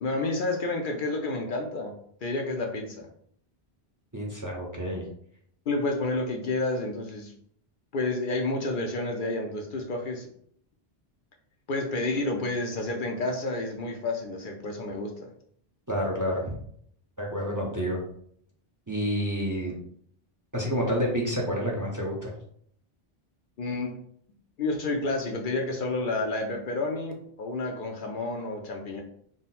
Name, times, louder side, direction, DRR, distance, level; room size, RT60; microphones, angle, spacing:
voice 1, 0.0-3.1 5.7-7.3 7.9-10.3 11.7-15.3 23.6-24.0 24.6-29.0, left 2 dB, 60° left, 2 dB, 0.6 m, -30 dB
voice 2, 4.1-5.0 15.9-16.4 17.2-18.0 18.9-19.7 20.5-22.3, equal, 20° right, -1 dB, 0.6 m, -29 dB
3.7 x 2.1 x 4.1 m, 0.65 s
omnidirectional pair, 1.1 m